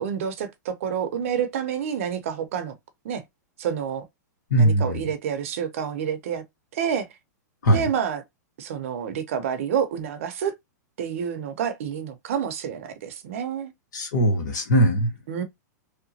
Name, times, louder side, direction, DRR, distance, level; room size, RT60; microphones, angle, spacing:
voice 1, 0.0-2.8 3.0-3.2 3.6-4.0 4.6-6.4 6.7-7.1 7.7-8.2 8.6-10.5 11.0-13.7 15.3-15.4, right 8 dB, 45° right, 0.7 m, -28 dB
voice 2, 4.5-5.0 7.6-7.9 13.9-15.1, right 1 dB, 75° left, 1.7 m, -20 dB
3.3 x 2.9 x 2.8 m
supercardioid pair, 175°, 10 cm